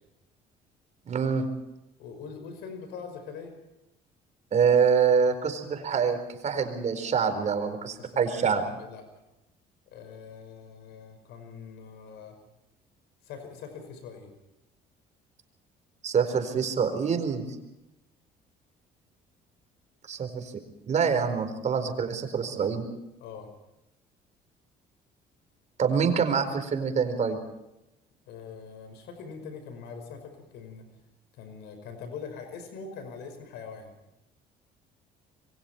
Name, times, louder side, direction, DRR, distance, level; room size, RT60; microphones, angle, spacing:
voice 1, 1.1-1.4 4.5-6.2 6.4-8.6 16.0-17.4 20.1-20.5 20.9-22.8 25.8-27.4, right 6 dB, 45° right, 8 dB, 4.5 m, -25 dB
voice 2, 2.0-3.6 8.0-9.0 9.9-12.4 13.2-14.3 23.2-23.5 28.3-30.9 31.3-33.9, left 5 dB, 90° left, 7 dB, 5.4 m, -43 dB
27.0 x 23.0 x 4.5 m, 0.90 s
cardioid pair, 110°, 17 cm